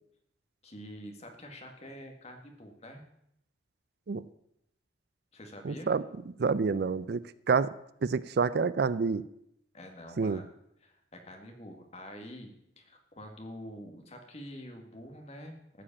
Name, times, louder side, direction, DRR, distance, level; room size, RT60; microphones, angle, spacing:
voice 1, 0.6-3.0 5.3-5.9 9.7-10.5 10.8-15.6, equal, 35° left, 4 dB, 1.9 m, -46 dB
voice 2, 5.6-6.0 6.4-7.2 7.5-7.7 8.0-9.2 10.2-10.4, right 5 dB, 60° right, 16 dB, 0.4 m, -27 dB
14.0 x 5.1 x 8.5 m, 0.77 s
head